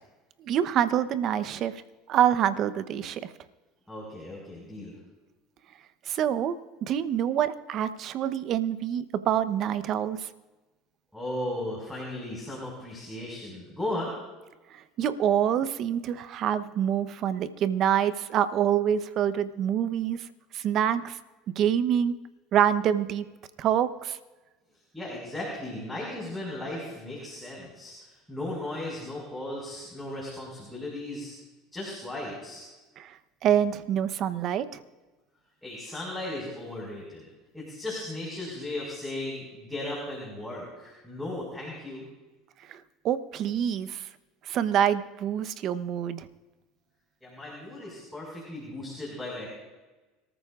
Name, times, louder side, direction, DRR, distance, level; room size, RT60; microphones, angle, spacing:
voice 1, 0.4-1.8 2.1-3.3 6.1-10.3 14.7-20.3 20.5-21.2 21.5-22.1 22.5-23.3 23.6-24.2 33.0-34.8 42.7-44.1 44.4-46.3, right 9 dB, 50° right, 13 dB, 0.9 m, -26 dB
voice 2, 3.9-4.9 11.1-14.1 24.9-31.3 31.7-32.7 35.6-37.2 37.5-42.1 47.2-49.5, left 1 dB, 5° left, -4 dB, 5.4 m, -36 dB
26.0 x 14.0 x 2.5 m, 1.2 s
supercardioid pair, 95°, 0 cm